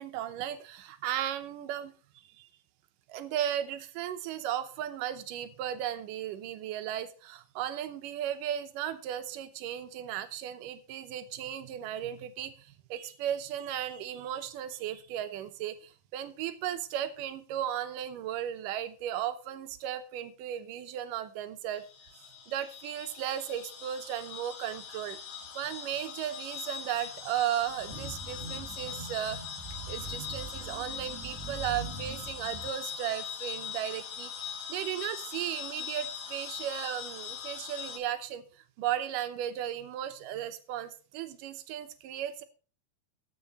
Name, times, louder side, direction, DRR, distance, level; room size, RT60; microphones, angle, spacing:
voice 1, 0.0-1.9 2.4-2.5 3.1-21.8 22.5-25.2 25.6-42.4, right 11 dB, 75° right, 10 dB, 2.2 m, -35 dB
sound 1, 21.7-38.0, left 8 dB, 60° left, 1.5 m, -41 dB
sound 2, 27.6-32.7, right 3 dB, 40° right, 0.8 m, -43 dB
14.5 x 6.6 x 4.1 m, 0.37 s
omnidirectional pair, 4.4 m